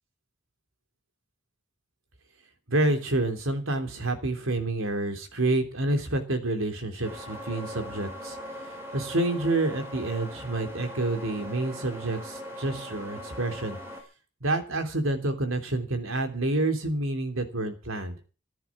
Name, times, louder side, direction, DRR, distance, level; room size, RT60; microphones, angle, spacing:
voice 1, 2.7-8.4 8.9-13.8 14.4-18.2, right 2 dB, 75° right, 7 dB, 3.2 m, -28 dB
sound 1, 7.0-14.0, equal, 10° right, 3.6 m, -40 dB
15.0 x 10.5 x 7.2 m, 0.37 s
head